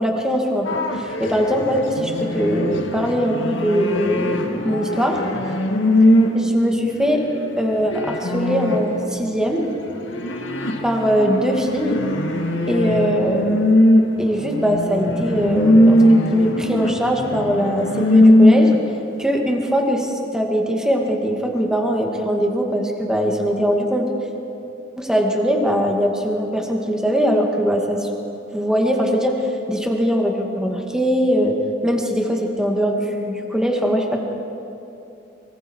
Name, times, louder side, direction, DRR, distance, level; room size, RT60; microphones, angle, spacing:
voice 1, 0.0-5.2 6.3-7.2 7.6-9.7 10.8-12.0 12.7-13.7 14.2-16.0 16.3-18.7 19.2-24.1 25.0-28.1 28.5-31.6 31.8-34.2, equal, 5° right, 1 dB, 2.1 m, -21 dB
sound 1, 0.7-6.4 7.0-9.1 9.6-18.9, left 1 dB, 80° left, 1.9 m, -20 dB
24.5 x 23.5 x 4.7 m, 2.8 s
head